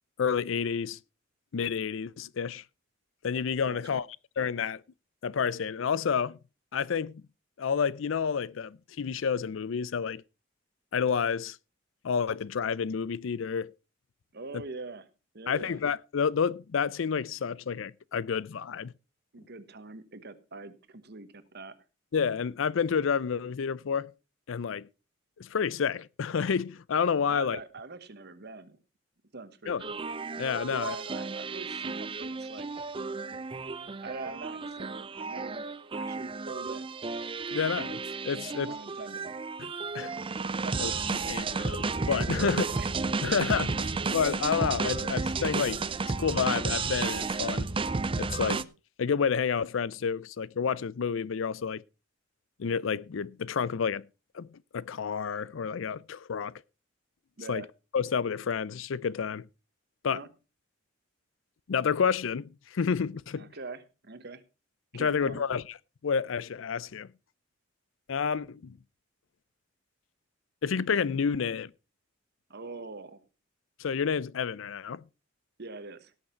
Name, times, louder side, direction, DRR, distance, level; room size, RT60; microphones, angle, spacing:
voice 1, 0.2-1.0 1.5-2.6 3.2-4.1 4.4-4.8 5.2-6.4 6.7-7.2 7.6-10.2 10.9-11.6 12.0-13.7 15.5-18.9 22.1-24.1 24.5-24.9 25.4-27.6 29.7-29.8 30.4-31.0 37.5-38.7 39.9-40.1 40.8-40.9 41.2-42.6 43.2-47.7 48.2-48.6 49.0-51.8 52.6-54.1 54.3-56.5 57.5-57.6 57.9-59.5 60.0-60.2 61.7-63.5 64.9-65.6 66.0-67.1 68.1-68.8 70.6-71.7 73.8-75.0, left 6 dB, 70° left, 0.5 m, -29 dB
voice 2, 3.7-4.0 14.3-15.1 15.3-15.8 19.3-21.8 27.3-28.8 29.3-30.0 30.7-32.8 34.0-35.7 35.9-36.9 37.5-37.8 38.5-39.4 40.6-40.8 42.4-42.9 43.2-43.4 57.4-57.7 60.1-60.3 63.3-64.4 64.9-65.5 72.5-73.2 75.6-76.1, right 3 dB, 55° right, 1.2 m, -43 dB
sound 1, 29.8-48.6, right 4 dB, 25° right, 0.5 m, -32 dB
17.5 x 6.5 x 4.4 m
head